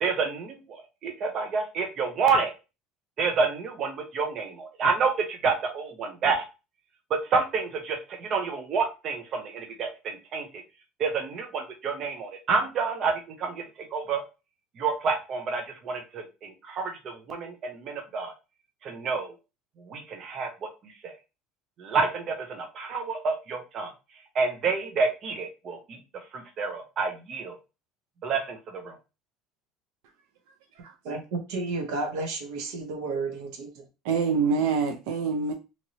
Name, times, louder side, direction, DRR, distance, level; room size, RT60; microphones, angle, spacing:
voice 1, 0.0-2.5 3.2-6.4 7.3-10.5 11.0-13.1 13.4-13.6 13.9-14.2 14.8-18.3 18.8-19.3 19.9-20.5 21.0-21.1 21.8-23.9 24.3-26.0 26.3-27.6 28.2-29.0, right 4 dB, 35° right, 0.5 m, -28 dB
voice 2, 31.0-33.8, right 3 dB, 70° right, 0.8 m, -32 dB
voice 3, 34.0-35.5, right 5 dB, 90° right, 0.4 m, -25 dB
2.9 x 2.8 x 2.7 m
cardioid pair, 180°, 0 cm